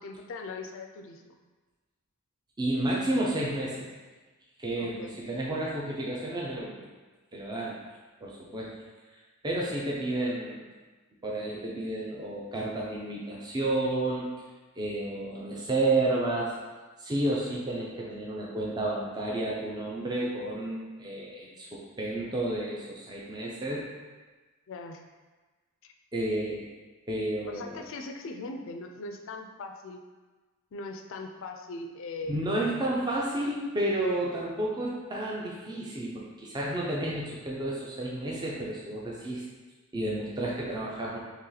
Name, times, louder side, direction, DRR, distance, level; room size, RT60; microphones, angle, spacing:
voice 1, 0.0-1.4 4.8-5.1 24.7-25.1 25.8-25.9 27.5-30.0 30.7-32.4, left 3 dB, 55° left, 4 dB, 0.3 m, -40 dB
voice 2, 2.6-3.9 4.6-6.9 7.3-7.8 8.2-8.7 9.4-10.7 11.2-14.3 14.8-16.5 17.0-23.9 26.1-26.7 27.1-27.9 32.3-39.4 39.9-41.2, right 1 dB, 20° right, -4 dB, 0.4 m, -31 dB
3.0 x 2.8 x 3.8 m, 1.3 s
head